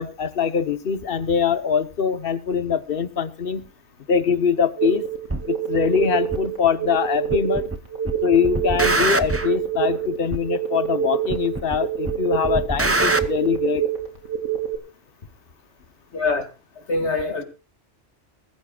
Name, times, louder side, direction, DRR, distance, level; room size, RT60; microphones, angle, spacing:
voice 1, 0.0-3.6 4.1-5.1 5.5-7.7 8.2-13.9, left 7 dB, 50° left, 12 dB, 1.2 m, -23 dB
sound 1, 4.8-14.8, right 9 dB, 85° right, 3.1 m, -26 dB
sound 2, 5.3-5.4 6.3-6.4 7.3-7.8 8.1-9.5 10.3-10.4 11.3-11.8 12.1-13.3, right 2 dB, 15° right, 0.5 m, -23 dB
voice 2, 16.1-16.5 16.8-17.4, left 3 dB, 65° left, 7 dB, 2.4 m, -24 dB
21.0 x 14.0 x 2.4 m, 0.30 s
omnidirectional pair, 1.2 m